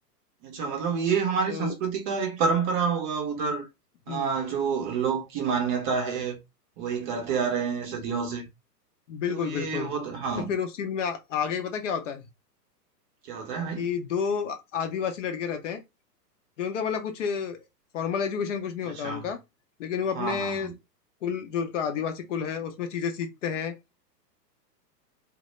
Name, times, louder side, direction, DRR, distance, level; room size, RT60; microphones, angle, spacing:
voice 1, 0.4-3.7 4.1-6.4 6.8-8.4 9.3-10.5 13.2-13.9 18.9-19.3 20.1-20.7, right 6 dB, 30° right, 0.6 m, -28 dB
voice 2, 9.1-9.9 10.5-12.2 13.8-15.8 16.6-17.6 17.9-19.4 19.8-20.7 21.2-23.8, left 7 dB, 50° left, 0.6 m, -30 dB
2.1 x 2.1 x 2.9 m
hypercardioid pair, 115°, 50 cm